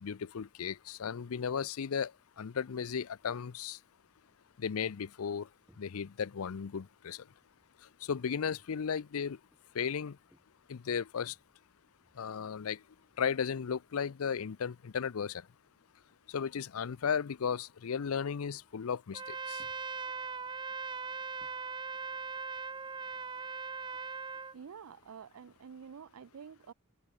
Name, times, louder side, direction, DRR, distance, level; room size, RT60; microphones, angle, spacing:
voice 1, 0.0-2.1 2.4-3.8 4.6-5.5 5.8-7.2 8.0-9.4 9.7-10.2 10.7-11.3 12.2-12.8 13.2-15.4 16.3-19.2 19.5-19.6, left 7 dB, 75° left, 0.5 m, -35 dB
Paddles rowing on a calm water stream, 3.2-3.6 4.1-6.4 6.7-14.6 14.8-15.9 16.2-16.5 16.9-17.3 17.6-21.8, equal, 5° right, 3.2 m, -71 dB
Trumpet, 19.1-24.5, right 5 dB, 20° right, 0.5 m, -40 dB
voice 2, 24.5-26.7, right 7 dB, 80° right, 0.5 m, -49 dB
head